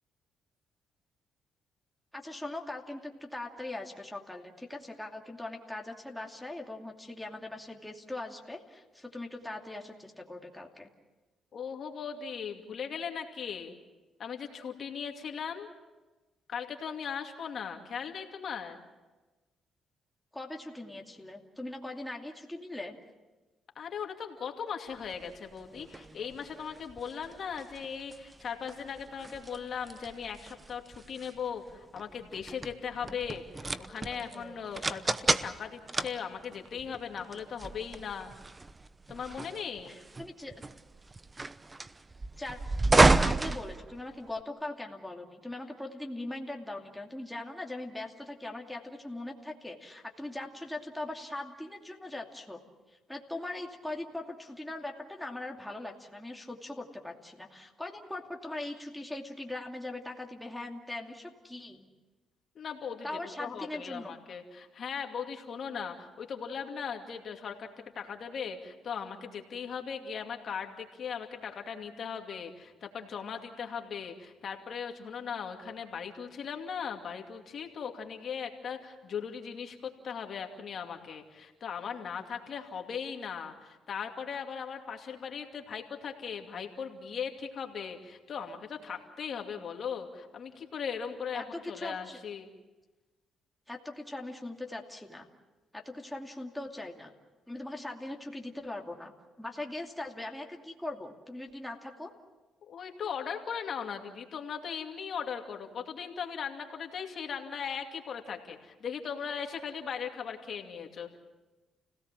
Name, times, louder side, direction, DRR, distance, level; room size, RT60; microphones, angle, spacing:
voice 1, 2.1-10.9 20.3-23.0 39.9-40.5 42.4-42.6 43.2-52.6 53.1-61.9 63.0-64.2 91.3-92.2 93.7-95.3 95.7-97.1 97.5-102.1, left 2 dB, 5° left, 0 dB, 2.6 m, -40 dB
voice 2, 11.5-13.7 14.2-15.7 16.5-18.8 23.8-38.3 39.1-40.0 62.6-63.1 63.4-67.7 67.9-92.5 102.7-111.2, left 7 dB, 55° left, 3 dB, 2.5 m, -38 dB
sound 1, 25.0-44.4, right 3 dB, 25° right, 0.9 m, -32 dB
29.5 x 17.5 x 7.5 m, 1.2 s
cardioid pair, 90°, 0 cm